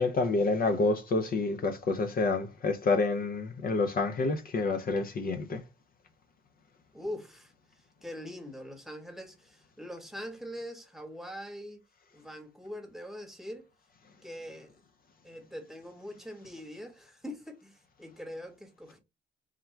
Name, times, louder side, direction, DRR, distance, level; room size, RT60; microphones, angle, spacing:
voice 1, 0.0-5.6, left 3 dB, 45° left, 0.6 m, -28 dB
voice 2, 6.9-7.5 8.0-11.8 12.1-13.7 14.2-14.7 15.2-19.0, equal, ahead, 0.9 m, -43 dB
3.6 x 2.2 x 4.3 m
cardioid pair, 90°, 20 cm